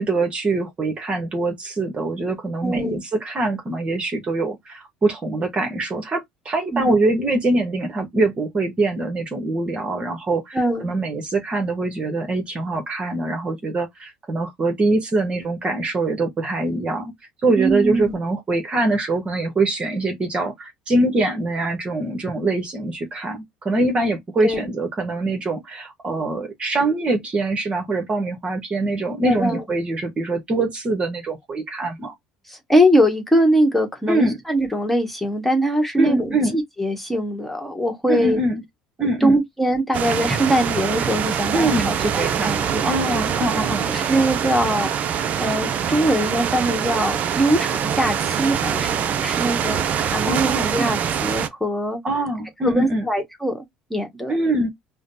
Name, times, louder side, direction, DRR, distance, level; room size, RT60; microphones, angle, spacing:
voice 1, 0.0-17.1 17.4-32.1 34.1-34.4 36.0-36.6 38.1-38.6 39.0-39.4 41.5-42.6 42.8-43.9 50.2-50.8 52.0-53.1 54.3-54.7, right 2 dB, 35° right, 1.2 m, -23 dB
voice 2, 2.6-3.0 6.7-7.0 10.5-10.9 17.6-18.1 24.4-24.7 29.3-29.6 32.5-38.4 39.2-43.0 43.9-44.9 45.4-52.0 52.6-54.3, right 1 dB, 5° left, 1.4 m, -22 dB
sound 1, 39.9-51.5, right 8 dB, 50° right, 0.5 m, -24 dB
4.9 x 2.2 x 2.6 m
supercardioid pair, 80°, 3 cm